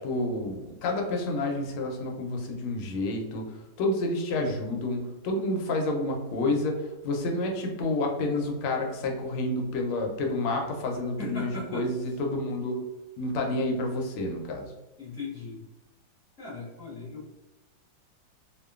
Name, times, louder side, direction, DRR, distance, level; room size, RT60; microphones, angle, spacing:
voice 1, 0.0-12.8 13.2-14.7, left 2 dB, 85° left, 2 dB, 1.4 m, -29 dB
voice 2, 11.2-11.9 15.0-15.6 16.4-17.3, left 2 dB, 50° left, -7 dB, 1.0 m, -38 dB
3.3 x 2.1 x 2.3 m, 1.1 s
omnidirectional pair, 2.3 m